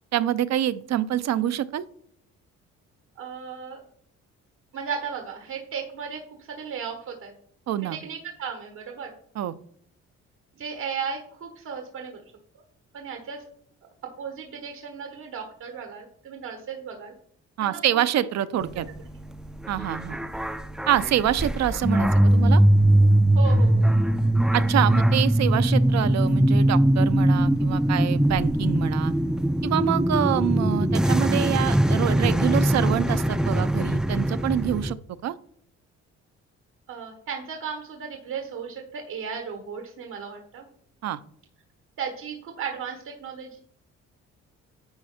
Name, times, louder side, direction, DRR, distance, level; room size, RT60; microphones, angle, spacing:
voice 1, 0.1-1.8 7.7-8.0 9.4-9.5 17.6-18.9 19.7-20.2 20.9-22.6 24.5-29.1 29.6-35.3 41.0-41.2, right 11 dB, 60° right, 15 dB, 0.6 m, -26 dB
voice 2, 3.2-3.8 4.7-7.3 7.9-9.1 10.6-12.2 12.9-13.4 14.2-17.1 17.6-18.1 23.3-23.9 36.9-40.7 42.0-43.6, right 6 dB, 80° right, 2 dB, 1.5 m, -35 dB
sound 1, 18.6-34.9, right 1 dB, ahead, 0.4 m, -21 dB
10.5 x 4.3 x 4.3 m, 0.64 s
cardioid pair, 90°, 30 cm